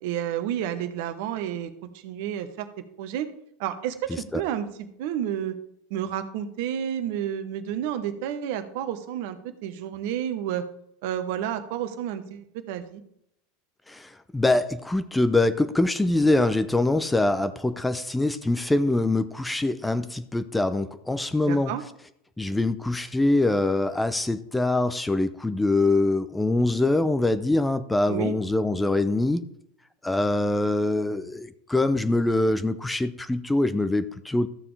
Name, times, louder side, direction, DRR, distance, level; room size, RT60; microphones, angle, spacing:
voice 1, 0.0-2.7 3.0-3.3 3.6-4.7 5.0-5.6 5.9-10.6 11.0-13.0 21.4-21.8 28.1-28.3, right 10 dB, 60° right, 9 dB, 1.0 m, -30 dB
voice 2, 4.1-4.4 13.9-21.7 22.4-29.5 30.0-34.5, left 2 dB, 10° left, 12 dB, 0.6 m, -24 dB
13.5 x 6.9 x 3.3 m, 0.73 s
figure-of-eight pair, 85°, 0 cm